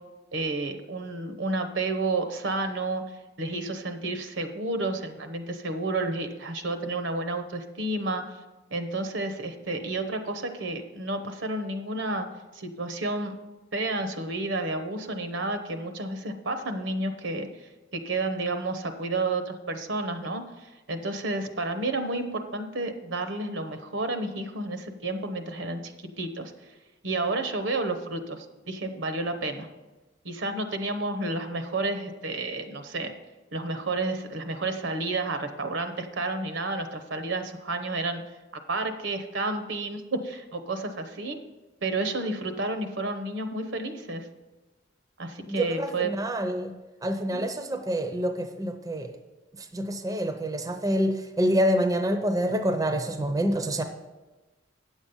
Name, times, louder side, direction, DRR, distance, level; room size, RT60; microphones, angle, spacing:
voice 1, 0.3-3.0 3.4-8.4 8.7-12.3 12.5-13.4 13.7-26.5 27.0-29.7 30.2-33.1 33.5-38.2 38.7-41.4 41.8-44.3 45.2-46.1 47.3-47.5, right 2 dB, 75° right, 8 dB, 1.0 m, -31 dB
voice 2, 45.5-46.7 47.0-49.1 49.7-53.8, equal, 20° right, 7 dB, 0.6 m, -27 dB
9.4 x 7.3 x 5.4 m, 1.1 s
head